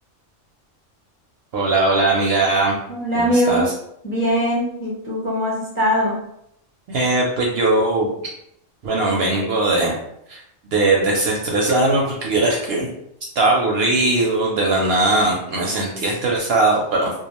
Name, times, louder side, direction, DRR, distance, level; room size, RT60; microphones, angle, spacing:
voice 1, 1.5-2.8 3.1-3.7 6.9-8.1 8.8-9.9 10.3-10.4 10.7-12.9 13.4-17.1, right 2 dB, 65° right, -2 dB, 0.7 m, -19 dB
voice 2, 2.9-3.7 4.0-6.2, equal, 15° left, -6 dB, 0.5 m, -21 dB
2.3 x 2.3 x 2.9 m, 0.75 s
omnidirectional pair, 1.3 m